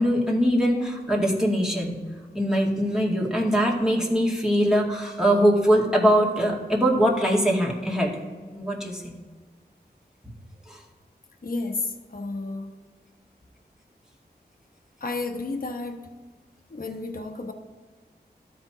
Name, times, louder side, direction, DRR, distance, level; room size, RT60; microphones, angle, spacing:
voice 1, 0.0-2.0 2.3-8.2 8.5-9.1 10.7-10.8, equal, 5° right, -3 dB, 2.2 m, -22 dB
voice 2, 11.4-11.8 12.1-12.7 15.0-16.0 16.7-17.5, left 3 dB, 55° left, 4 dB, 1.0 m, -31 dB
13.0 x 4.5 x 3.7 m, 1.4 s
cardioid pair, 40°, 17 cm